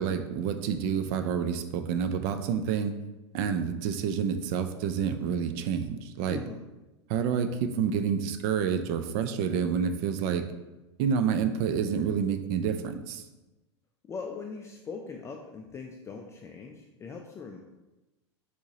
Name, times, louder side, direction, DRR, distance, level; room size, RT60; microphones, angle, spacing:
voice 1, 0.0-3.0 3.3-6.4 7.1-10.4 11.0-13.2, right 7 dB, 50° right, 8 dB, 0.5 m, -28 dB
voice 2, 6.3-6.6 14.0-17.6, left 5 dB, 20° left, 2 dB, 0.4 m, -40 dB
4.5 x 4.1 x 2.8 m, 1.1 s
hypercardioid pair, 100°, 15 cm